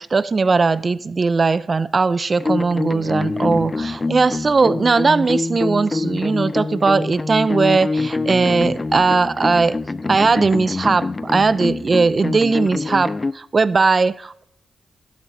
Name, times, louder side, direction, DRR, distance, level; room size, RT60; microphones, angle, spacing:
voice 1, 0.0-9.8 10.1-14.4, right 4 dB, 40° right, 0.4 m, -18 dB
sound 1, 2.4-13.3, left 3 dB, 25° left, 0.4 m, -25 dB
18.5 x 7.3 x 2.7 m
cardioid pair, 85°, 0 cm